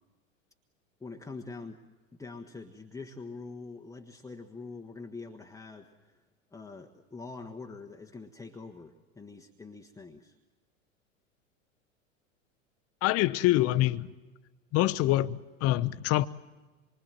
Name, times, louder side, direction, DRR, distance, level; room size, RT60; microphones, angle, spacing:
voice 1, 1.0-1.8 2.2-6.2 6.5-10.4, left 3 dB, 10° left, 1.3 m, -44 dB
voice 2, 13.0-14.1 14.7-16.3, left 16 dB, 40° left, 0.9 m, -25 dB
27.0 x 24.0 x 7.5 m
figure-of-eight pair, 90°, 39 cm